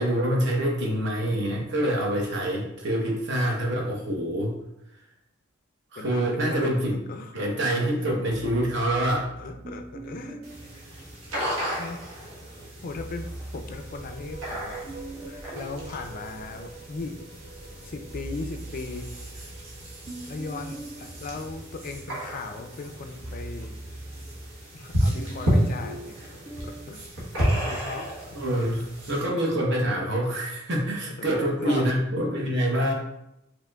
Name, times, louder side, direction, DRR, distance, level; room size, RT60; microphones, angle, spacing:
voice 1, 0.0-4.6 5.9-7.0 7.3-9.3 27.9-28.0 28.3-32.9, right 1 dB, 60° right, -1 dB, 0.9 m, -26 dB
voice 2, 6.0-7.3 8.0-8.1 9.2-10.4 11.3-12.0 12.4-14.8 15.3-17.2 17.8-19.5 20.3-23.8 24.7-26.2 26.6-27.0 27.6-28.3 31.2-31.9, left 3 dB, 45° left, 6 dB, 0.3 m, -38 dB
sound 1, 8.3-11.8 12.8-17.2 17.6-26.9, right 2 dB, 30° right, 0.4 m, -43 dB
sound 2, 10.4-29.3, equal, 80° right, 1.2 m, -32 dB
sound 3, 13.5-21.1, right 3 dB, 5° right, 0.9 m, -46 dB
4.9 x 2.9 x 2.3 m, 0.82 s
head